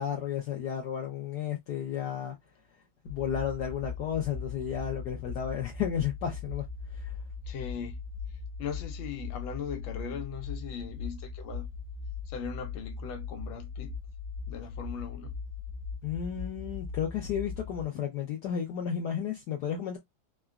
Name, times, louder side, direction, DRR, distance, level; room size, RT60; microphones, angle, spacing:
voice 1, 0.0-2.4 3.0-7.2 16.0-20.0, left 9 dB, 70° left, 1.1 m, -33 dB
sound 1, 3.1-17.8, left 5 dB, 70° right, 1.1 m, -39 dB
voice 2, 7.5-8.0 8.6-11.7 12.3-13.9 14.5-15.3, left 7 dB, 85° left, 1.5 m, -39 dB
3.8 x 2.2 x 2.3 m
omnidirectional pair, 2.1 m